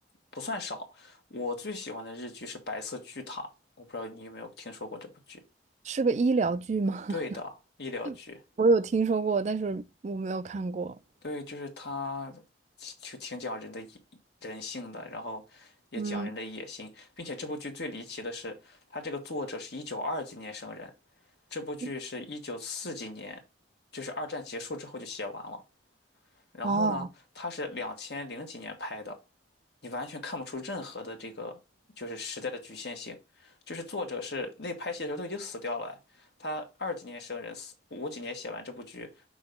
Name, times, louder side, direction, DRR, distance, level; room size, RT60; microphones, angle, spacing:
voice 1, 0.3-3.5 3.8-5.4 7.1-8.4 11.2-12.4 12.8-14.0 14.4-20.9 21.5-23.4 23.9-25.6 26.5-27.1 27.3-29.2 29.8-31.6 32.0-39.2, left 2 dB, 65° left, 1.5 m, -38 dB
voice 2, 5.9-7.1 8.6-10.9 16.0-16.3 26.6-27.1, right 3 dB, 40° right, 0.3 m, -27 dB
6.3 x 2.9 x 5.2 m
head